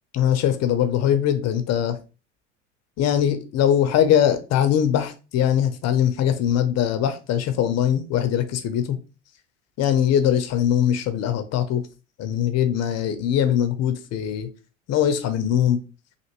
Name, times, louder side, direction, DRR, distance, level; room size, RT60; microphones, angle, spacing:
voice 1, 0.1-2.0 3.0-9.0 9.8-11.8 12.2-14.5 14.9-15.8, left 9 dB, 45° left, 0.6 m, -21 dB
3.3 x 2.5 x 2.9 m
hypercardioid pair, 85°, 37 cm